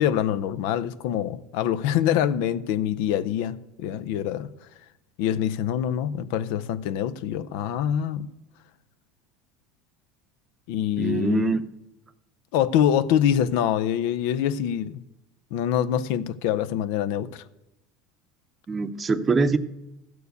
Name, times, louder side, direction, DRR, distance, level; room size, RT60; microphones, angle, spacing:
voice 1, 0.0-4.5 5.2-8.3 10.7-11.4 12.5-15.0 15.5-17.4, left 10 dB, 75° left, 0.5 m, -25 dB
voice 2, 11.0-11.7 18.7-19.6, right 4 dB, 25° right, 0.7 m, -23 dB
13.5 x 4.7 x 8.1 m
supercardioid pair, 100°, 0 cm